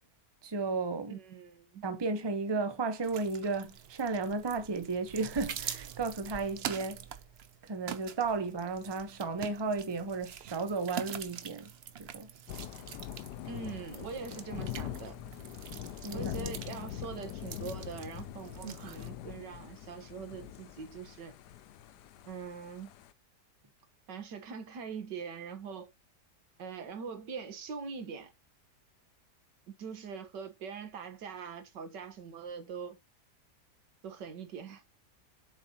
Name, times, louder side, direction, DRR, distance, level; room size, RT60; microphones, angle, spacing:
voice 1, 0.4-1.2 1.8-7.0 7.6-11.7 12.0-12.3 16.0-16.3, right 4 dB, 20° right, 0.7 m, -34 dB
voice 2, 1.1-1.8 13.5-15.2 16.1-21.4 22.3-22.9 24.1-25.9 26.6-28.3 29.7-33.0 34.0-34.8, right 6 dB, 90° right, 1.9 m, -42 dB
sound 1, 3.0-19.1, right 9 dB, 65° right, 0.6 m, -45 dB
Thunder / Rain, 12.5-23.1, left 11 dB, 75° left, 1.2 m, -43 dB
7.4 x 5.1 x 2.9 m
omnidirectional pair, 1.8 m